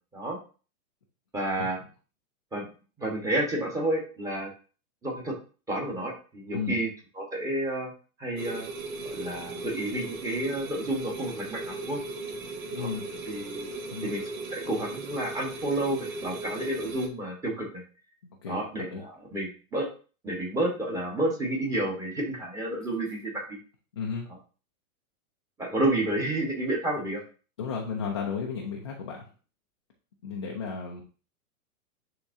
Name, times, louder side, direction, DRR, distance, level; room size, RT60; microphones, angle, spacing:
voice 1, 1.3-1.8 2.5-2.7 3.0-4.5 5.0-5.3 5.7-6.9 7.2-7.9 8.2-8.7 9.1-12.0 12.8-12.9 13.3-13.7 14.0-14.2 14.5-17.8 18.5-19.9 20.2-23.6 25.6-27.2, right 1 dB, 10° right, -1 dB, 1.2 m, -30 dB
sound 1, 8.4-17.1, right 2 dB, 65° right, 1.5 m, -37 dB
voice 2, 12.7-13.1 13.9-14.1 18.4-19.0 23.9-24.3 27.6-29.3 30.2-31.0, left 5 dB, 20° left, -1 dB, 0.3 m, -34 dB
9.9 x 3.6 x 2.7 m, 0.37 s
hypercardioid pair, 155°, 44 cm